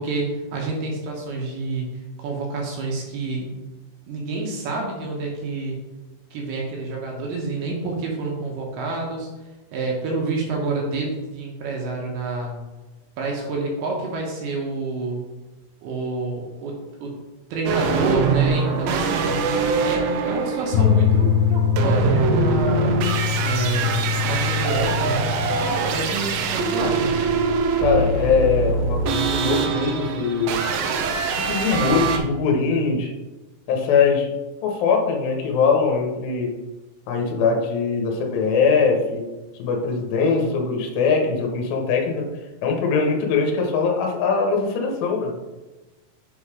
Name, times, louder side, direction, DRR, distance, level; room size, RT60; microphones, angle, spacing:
voice 1, 0.0-3.5 4.1-5.8 6.3-9.3 9.7-12.6 13.2-15.2 15.8-17.2 17.5-19.4 19.8-22.9 23.4-25.3 25.9-27.1, right 3 dB, 70° right, -1 dB, 2.8 m, -28 dB
sound 1, 17.7-32.2, right 4 dB, 90° right, 2.9 m, -23 dB
sound 2, 20.7-27.6, left 8 dB, 85° left, 2.8 m, -24 dB
voice 2, 27.8-30.6 31.4-33.1 33.7-34.3 34.6-36.5 37.1-39.3 39.5-42.3 42.6-45.3, left 5 dB, 70° left, 2 dB, 2.4 m, -21 dB
7.3 x 4.0 x 4.9 m, 1.1 s
omnidirectional pair, 5.1 m